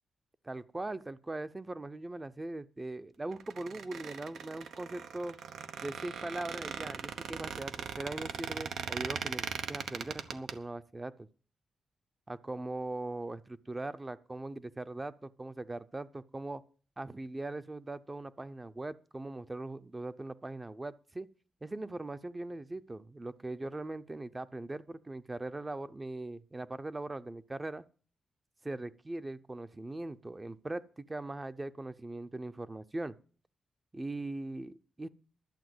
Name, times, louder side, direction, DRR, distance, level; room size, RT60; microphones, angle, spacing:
voice 1, 0.4-5.4 5.8-11.3 12.3-16.6 17.0-21.3 21.6-27.8 28.6-33.2 33.9-35.1, right 2 dB, 20° right, 0.6 m, -40 dB
Squeak, 3.3-10.5, right 7 dB, 90° right, 1.0 m, -39 dB
11.5 x 7.9 x 7.8 m
cardioid pair, 105°, 0 cm